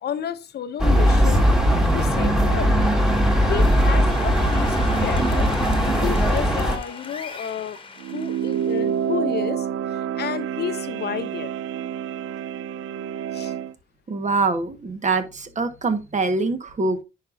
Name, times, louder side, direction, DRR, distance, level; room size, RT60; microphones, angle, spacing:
voice 1, 0.0-1.5 1.9-2.7 3.5-7.8 8.1-11.5 13.3-13.5, left 9 dB, 55° left, 0.7 m, -31 dB
sound 1, 0.8-6.8, equal, 5° right, 1.8 m, -19 dB
sound 2, 2.3-9.2, left 3 dB, 25° left, 1.3 m, -37 dB
sound 3, 8.0-13.7, right 9 dB, 80° right, 0.6 m, -28 dB
voice 2, 14.1-17.0, right 3 dB, 35° right, 1.4 m, -24 dB
10.0 x 5.2 x 2.6 m
cardioid pair, 90°, 20 cm